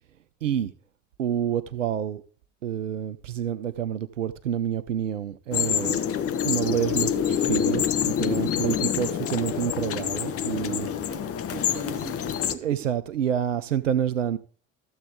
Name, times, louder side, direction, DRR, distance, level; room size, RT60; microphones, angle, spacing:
voice 1, 0.4-0.7 1.2-2.2 2.6-6.0 6.4-10.9 12.6-14.4, right 9 dB, 80° right, 0.6 m, -28 dB
sound 1, 5.5-12.5, left 8 dB, 35° left, 1.0 m, -26 dB
voice 2, 8.4-9.0 10.7-12.7, right 6 dB, 20° right, 3.1 m, -43 dB
14.0 x 7.9 x 3.6 m
figure-of-eight pair, 55°, 38 cm